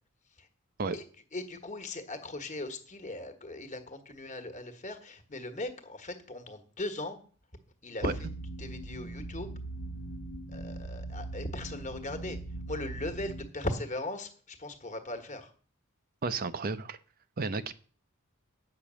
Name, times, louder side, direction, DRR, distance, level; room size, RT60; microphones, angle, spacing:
voice 1, 1.3-7.2 7.8-8.3 8.6-9.5 10.5-12.4 12.7-15.5, left 1 dB, 35° left, 7 dB, 1.4 m, -38 dB
sound 1, 8.0-13.5, right 2 dB, 80° left, 1.1 m, -40 dB
voice 2, 16.2-17.0 17.4-17.7, right 4 dB, 45° right, 12 dB, 0.6 m, -32 dB
8.6 x 6.0 x 7.5 m, 0.43 s
head